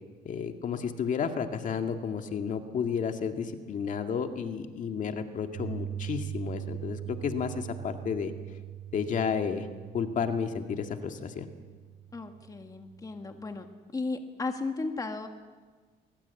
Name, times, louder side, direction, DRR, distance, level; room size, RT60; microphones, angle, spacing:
voice 1, 0.3-8.3 8.9-9.7 9.9-11.5, left 6 dB, 50° left, 6 dB, 2.0 m, -32 dB
Piano, 5.5-13.6, right 11 dB, 65° right, 2.9 m, -41 dB
voice 2, 12.1-13.7 13.9-15.3, left 3 dB, 20° left, 6 dB, 1.8 m, -35 dB
23.5 x 21.5 x 8.3 m, 1.5 s
cardioid pair, 110°, 17 cm